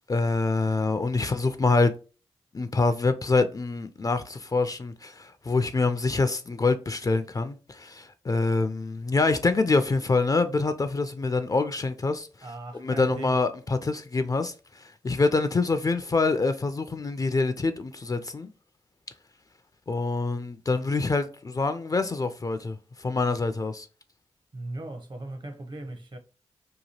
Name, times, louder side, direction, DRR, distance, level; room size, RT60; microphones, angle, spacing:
voice 1, 0.1-1.9 2.5-12.3 12.8-14.5 14.8-18.5 19.9-23.9, left 3 dB, 30° left, 0.3 m, -25 dB
voice 2, 12.4-13.4 24.5-26.2, right 2 dB, 40° right, 0.7 m, -37 dB
2.9 x 2.3 x 2.8 m
supercardioid pair, 40°, 12 cm